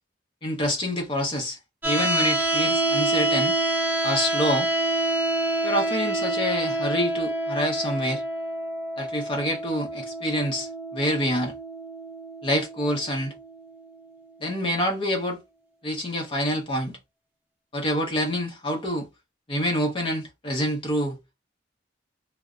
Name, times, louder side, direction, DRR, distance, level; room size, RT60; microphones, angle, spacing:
voice 1, 0.4-1.6 1.8-3.6 4.0-4.7 5.6-8.2 9.0-11.5 12.4-13.3 14.4-15.4 15.8-17.0 17.7-19.1 19.5-21.2, equal, 30° left, 0.7 m, -27 dB
sound 1, 1.8-13.8, right 1 dB, 10° right, 0.4 m, -27 dB
2.5 x 2.0 x 2.4 m
head